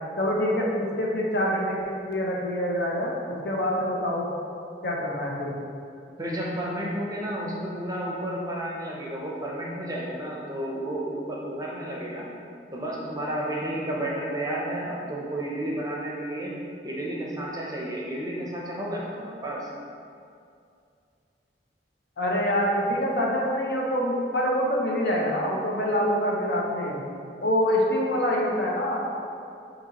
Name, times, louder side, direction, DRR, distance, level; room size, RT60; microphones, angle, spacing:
voice 1, 0.2-4.3 4.8-5.5 22.2-27.0 27.4-29.0, equal, 60° left, -2 dB, 0.7 m, -25 dB
voice 2, 6.2-12.3 12.7-16.5 16.8-19.7, right 1 dB, 20° right, -3 dB, 0.6 m, -32 dB
5.3 x 2.9 x 2.9 m, 2.5 s
head